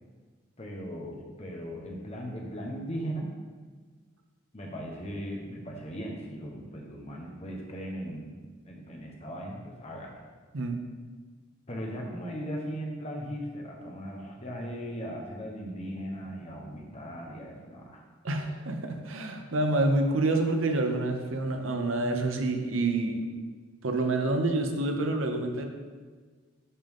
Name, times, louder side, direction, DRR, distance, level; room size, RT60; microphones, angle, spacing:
voice 1, 0.6-3.3 4.5-8.3 8.6-10.1 11.7-18.0, equal, 35° left, -1 dB, 1.1 m, -38 dB
voice 2, 18.2-23.2 23.8-25.7, right 2 dB, 90° right, 4 dB, 0.8 m, -27 dB
11.0 x 3.8 x 3.6 m, 1.5 s
head